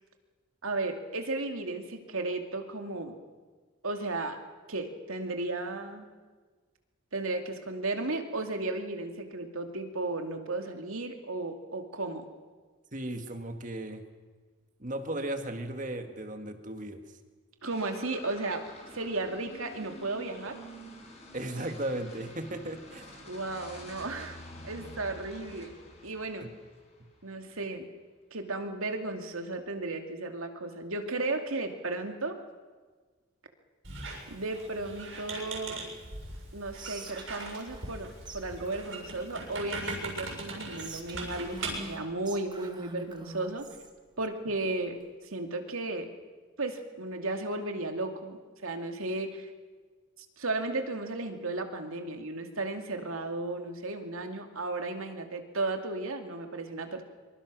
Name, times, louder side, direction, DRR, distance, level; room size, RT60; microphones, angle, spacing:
voice 1, 0.6-3.2 3.8-4.4 4.7-6.1 7.1-12.3 17.6-18.6 18.9-20.6 23.3-24.4 24.6-25.7 26.0-26.5 27.2-27.9 28.3-32.4 34.3-35.8 36.5-38.1 38.3-43.7 44.2-45.0 45.2-46.1 46.6-49.5 50.4-57.0, right 2 dB, 80° right, 5 dB, 2.5 m, -34 dB
voice 2, 12.9-14.1 14.8-17.0 21.3-23.2, right 1 dB, 35° right, 6 dB, 2.0 m, -36 dB
sound 1, 17.6-27.2, left 1 dB, 30° left, 5.0 m, -49 dB
Squeak, 33.8-42.0, right 2 dB, 60° right, 7.1 m, -40 dB
Whispering, 36.7-38.0 38.2-38.4 38.6-40.2 40.7-43.9, right 2 dB, 20° right, 1.9 m, -45 dB
25.5 x 24.5 x 6.3 m, 1.4 s
head